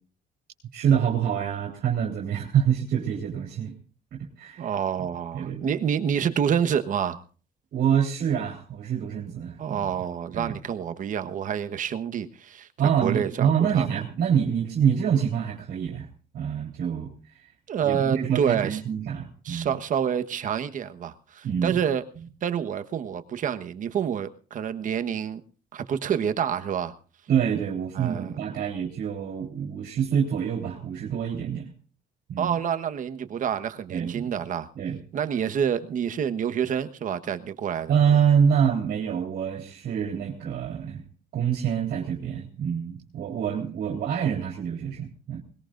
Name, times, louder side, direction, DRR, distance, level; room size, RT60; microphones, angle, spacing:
voice 1, 0.7-3.7 4.1-4.7 5.3-5.6 7.7-9.9 10.3-10.5 12.8-16.1 16.3-17.5 17.8-19.7 21.4-21.8 27.3-31.7 32.3-32.6 33.9-34.3 34.8-35.0 37.9-41.0 41.3-45.4, right 8 dB, 65° right, 0 dB, 3.5 m, -26 dB
voice 2, 4.6-7.2 9.6-12.7 13.0-14.0 17.7-18.8 19.4-22.0 22.4-25.4 25.7-26.9 27.9-28.3 32.4-34.7 35.1-38.0, right 8 dB, 50° right, 9 dB, 1.3 m, -28 dB
21.0 x 20.5 x 2.6 m, 0.40 s
cardioid pair, 110°, 17 cm